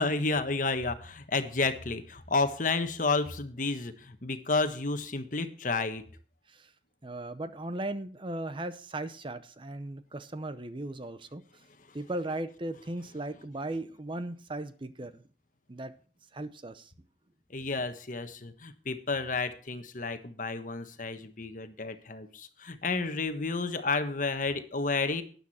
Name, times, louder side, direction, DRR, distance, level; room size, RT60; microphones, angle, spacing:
voice 1, 0.0-6.0 17.5-25.2, left 3 dB, 45° left, 1.3 m, -31 dB
voice 2, 7.0-11.4 11.9-15.2 15.7-15.9 16.3-16.9, right 2 dB, 30° right, 0.7 m, -37 dB
12.5 x 9.8 x 4.2 m
head